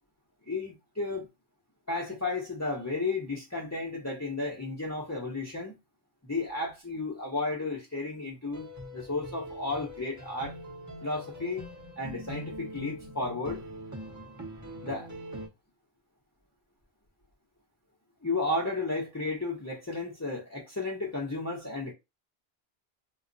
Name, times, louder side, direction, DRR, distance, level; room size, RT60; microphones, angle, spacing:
voice 1, 0.5-1.3 1.9-5.8 6.2-10.6 11.0-11.6 12.0-13.6 14.8-15.1 18.2-21.9, left 3 dB, 20° left, 0.6 m, -33 dB
sound 1, 8.5-15.5, equal, 20° right, 0.6 m, -43 dB
2.3 x 2.0 x 3.8 m
omnidirectional pair, 1.1 m